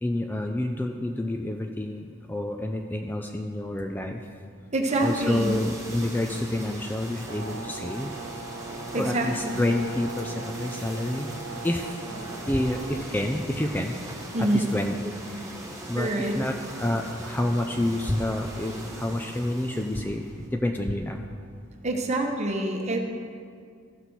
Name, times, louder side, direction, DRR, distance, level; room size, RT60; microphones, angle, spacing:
voice 1, 0.0-4.2 5.0-8.1 9.0-11.3 11.6-11.9 12.5-14.0 14.5-14.9 15.2-15.5 15.9-21.2, left 1 dB, 10° left, 3 dB, 0.4 m, -28 dB
voice 2, 4.7-5.6 8.9-9.6 14.3-14.8 15.9-16.4 21.8-23.0, right 1 dB, 35° right, 3 dB, 1.0 m, -26 dB
sound 1, 4.9-20.5, right 1 dB, 15° right, 1.2 m, -40 dB
Brass instrument, 7.3-13.1, right 4 dB, 60° right, 0.5 m, -39 dB
15.0 x 6.2 x 4.1 m, 2.2 s
head